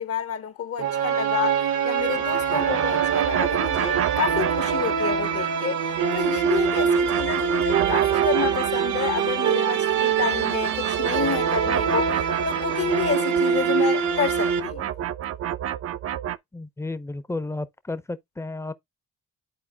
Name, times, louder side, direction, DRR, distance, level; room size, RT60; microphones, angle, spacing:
voice 1, 0.0-5.8 6.1-12.2 12.4-14.9, left 7 dB, 50° left, 0.8 m, -29 dB
sound 1, 0.8-14.6, right 7 dB, 75° right, 1.0 m, -24 dB
sound 2, 2.0-5.6 5.8-9.5 9.8-16.4, right 10 dB, 50° right, 0.5 m, -31 dB
voice 2, 16.5-18.7, left 2 dB, 10° left, 0.6 m, -32 dB
12.0 x 4.2 x 2.3 m
cardioid pair, 90°, 30 cm